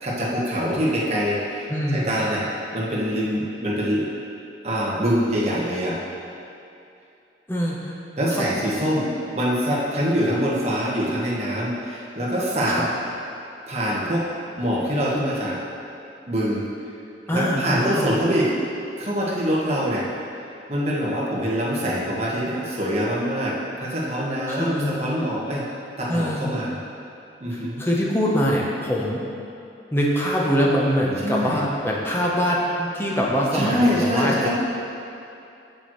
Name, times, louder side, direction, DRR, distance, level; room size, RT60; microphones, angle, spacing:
voice 1, 0.0-2.4 2.7-4.1 4.6-6.0 8.2-12.8 13.7-14.2 14.6-15.6 16.3-16.6 17.3-18.5 19.0-20.1 20.7-25.7 26.0-26.8 27.4-27.8 31.2-31.6 33.5-34.5, equal, 35° right, -6 dB, 1.2 m, -24 dB
voice 2, 1.7-2.1 7.5-7.9 8.3-8.4 8.8-8.9 12.7-12.9 17.3-18.2 21.8-22.1 24.5-25.0 26.1-26.5 27.5-29.2 29.9-34.5, equal, 10° left, -3 dB, 0.8 m, -23 dB
7.6 x 6.9 x 3.1 m, 2.7 s
head